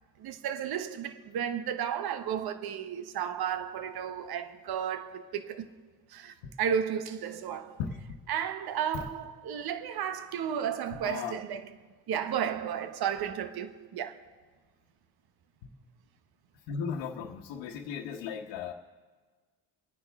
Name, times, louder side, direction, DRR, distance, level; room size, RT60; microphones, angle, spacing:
voice 1, 0.2-5.7 6.1-7.8 8.3-11.7 12.1-14.2, right 8 dB, 55° right, 1.1 m, -33 dB
voice 2, 11.0-11.4 16.7-18.7, left 6 dB, 80° left, 1.2 m, -36 dB
29.0 x 10.0 x 3.5 m
cardioid pair, 95°, 45 cm